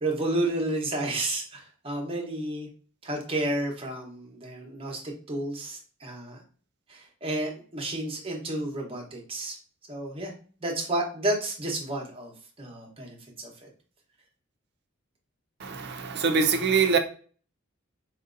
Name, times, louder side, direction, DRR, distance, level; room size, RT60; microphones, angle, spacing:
voice 1, 0.0-2.7 3.0-6.4 6.9-9.6 9.9-10.3 10.6-13.7, right 1 dB, 25° right, 0.9 m, -31 dB
voice 2, 15.6-17.0, right 5 dB, 55° right, 0.5 m, -24 dB
4.5 x 2.7 x 2.5 m
head